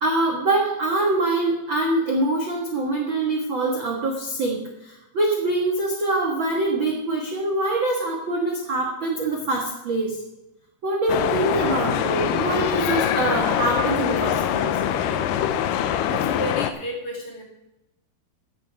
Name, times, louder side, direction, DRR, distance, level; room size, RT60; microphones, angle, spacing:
voice 1, 0.0-10.2 10.8-14.8, right 2 dB, 70° right, -1 dB, 1.1 m, -24 dB
sound 1, 11.1-16.7, left 9 dB, 85° left, 1.9 m, -23 dB
voice 2, 16.1-17.4, equal, 35° left, -2 dB, 3.2 m, -32 dB
15.5 x 7.4 x 5.0 m, 0.92 s
omnidirectional pair, 4.8 m